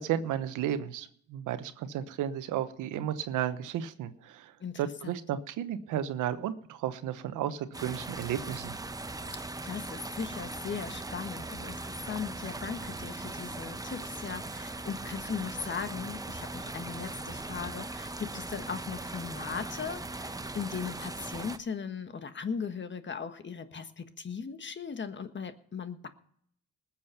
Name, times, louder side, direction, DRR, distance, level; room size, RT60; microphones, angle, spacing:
voice 1, 0.0-8.7, right 10 dB, 85° right, 11 dB, 1.1 m, -33 dB
voice 2, 4.6-5.2 9.3-26.1, left 6 dB, 40° left, 10 dB, 1.5 m, -38 dB
sound 1, 7.7-21.6, right 2 dB, 10° right, 0.9 m, -39 dB
20.0 x 7.4 x 5.8 m, 0.66 s
cardioid pair, 90°, 30 cm